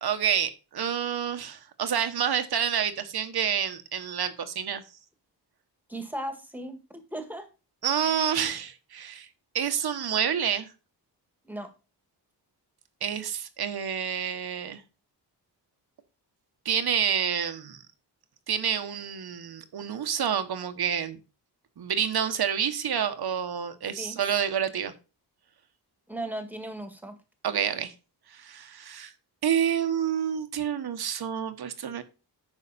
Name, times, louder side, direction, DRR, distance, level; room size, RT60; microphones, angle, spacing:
voice 1, 0.0-4.8 7.8-9.3 9.5-10.7 13.0-14.8 16.6-17.8 18.5-21.2 21.8-24.9 27.4-27.9 28.3-29.1 29.4-32.0, right 8 dB, 65° right, 9 dB, 1.2 m, -28 dB
voice 2, 5.9-7.5 11.4-11.7 24.0-24.2 26.1-27.2, right 1 dB, 5° right, 6 dB, 1.9 m, -36 dB
9.8 x 6.3 x 4.2 m, 0.32 s
wide cardioid pair, 120°, 41 cm